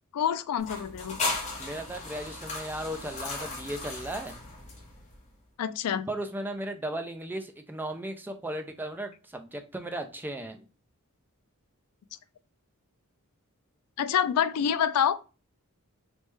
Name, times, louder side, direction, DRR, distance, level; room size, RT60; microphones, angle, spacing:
voice 1, 0.1-1.2 5.6-6.1 14.0-15.2, left 8 dB, 80° left, 0.3 m, -27 dB
sound 1, 0.6-5.2, left 3 dB, 30° left, 1.1 m, -36 dB
voice 2, 1.6-4.4 6.1-10.6, right 1 dB, 10° right, 0.4 m, -36 dB
3.3 x 3.1 x 3.1 m
head